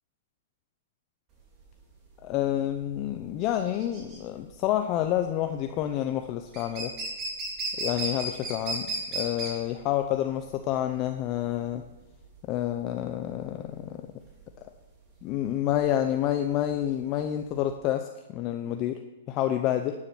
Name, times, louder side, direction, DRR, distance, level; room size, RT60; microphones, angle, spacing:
sound 1, 1.4-17.7, right 2 dB, 25° right, 3.6 m, -37 dB
voice 1, 2.2-6.9 7.8-11.8 12.5-14.0 14.6-14.7 15.2-19.0 19.3-19.9, left 12 dB, 30° left, 6 dB, 0.7 m, -28 dB
11.5 x 9.9 x 6.1 m, 1.1 s
hypercardioid pair, 155°, 0 cm